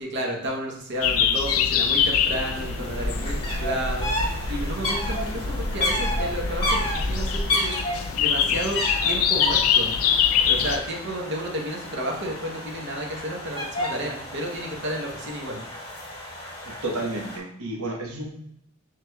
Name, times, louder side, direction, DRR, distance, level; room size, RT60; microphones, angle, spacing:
voice 1, 0.0-7.8 8.1-9.9 10.4-15.6, right 1 dB, 55° right, 0 dB, 0.8 m, -32 dB
sound 1, 1.0-10.8, left 8 dB, 80° left, 0.4 m, -25 dB
sound 2, 1.5-1.6 1.8-17.4, left 1 dB, 20° left, 1.4 m, -32 dB
sound 3, 2.3-7.5, equal, 5° left, 0.6 m, -31 dB
voice 2, 16.6-18.3, right 2 dB, 90° right, 0 dB, 1.0 m, -31 dB
5.9 x 3.2 x 2.2 m, 0.77 s
head